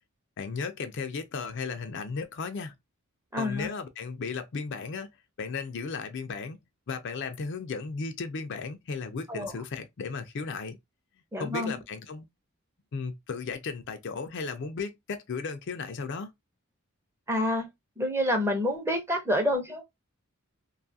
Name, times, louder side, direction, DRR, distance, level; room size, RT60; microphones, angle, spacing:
voice 1, 0.4-2.7 3.4-5.1 5.4-6.6 6.9-10.8 11.4-12.3 12.9-16.3, left 4 dB, 60° left, 0.4 m, -35 dB
voice 2, 3.3-3.7 9.3-9.5 11.3-11.7 17.3-17.7 18.0-19.8, left 1 dB, 10° right, 0.7 m, -28 dB
2.6 x 2.4 x 2.6 m
head